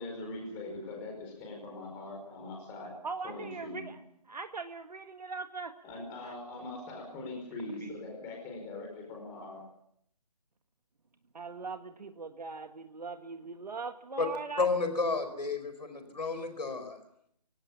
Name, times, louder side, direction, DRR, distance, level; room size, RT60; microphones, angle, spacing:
voice 1, 0.0-2.9 3.2-3.9 5.8-9.6, left 2 dB, 10° left, 1 dB, 5.0 m, -42 dB
voice 2, 3.0-4.0 4.3-5.7 6.2-6.4 7.8-7.9 11.3-14.7, right 4 dB, 70° right, 6 dB, 1.8 m, -40 dB
voice 3, 14.6-17.0, left 4 dB, 85° left, 9 dB, 4.5 m, -31 dB
25.0 x 17.5 x 7.2 m, 0.72 s
figure-of-eight pair, 165°, 21 cm